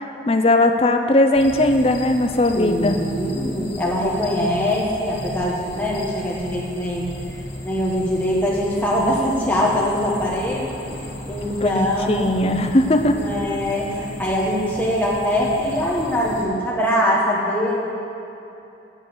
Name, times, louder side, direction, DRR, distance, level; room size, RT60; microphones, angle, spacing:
voice 1, 0.3-3.0 11.5-13.2, left 1 dB, 30° left, 6 dB, 0.5 m, -18 dB
sound 1, 1.3-16.4, left 1 dB, 60° left, 2.2 m, -35 dB
voice 2, 2.5-7.1 7.6-12.6 13.1-17.8, equal, 10° left, -5 dB, 1.6 m, -23 dB
8.2 x 8.1 x 7.0 m, 2.8 s
head